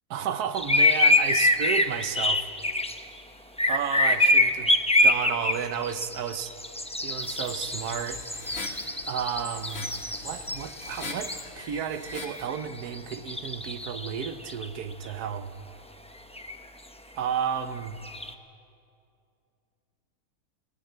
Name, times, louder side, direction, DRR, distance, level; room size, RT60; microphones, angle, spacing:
voice 1, 0.1-2.5 3.7-4.7 5.0-6.5 7.0-8.2 9.1-9.9 10.2-15.5 17.1-18.0, right 8 dB, 80° right, 11 dB, 1.4 m, -32 dB
sound 1, 0.6-3.0 3.6-11.8 12.0-12.6 12.9-14.7 16.4-16.6 17.9-18.3, left 1 dB, 5° left, 0.5 m, -25 dB
sound 2, 7.2-12.5, left 3 dB, 45° left, 2.1 m, -42 dB
19.5 x 18.0 x 7.9 m, 2.6 s
omnidirectional pair, 1.6 m